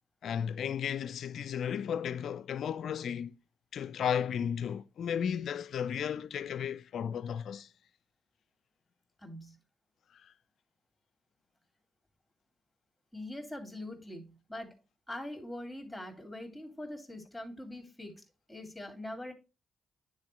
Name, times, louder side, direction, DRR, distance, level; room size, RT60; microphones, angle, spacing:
voice 1, 0.2-3.3 3.7-7.7 10.2-10.3, left 8 dB, 65° left, 0.4 m, -34 dB
voice 2, 9.2-9.6 13.1-14.7 15.1-18.2 18.5-19.3, left 1 dB, 5° left, 2.6 m, -43 dB
9.7 x 4.2 x 3.2 m
hypercardioid pair, 40°, 0 cm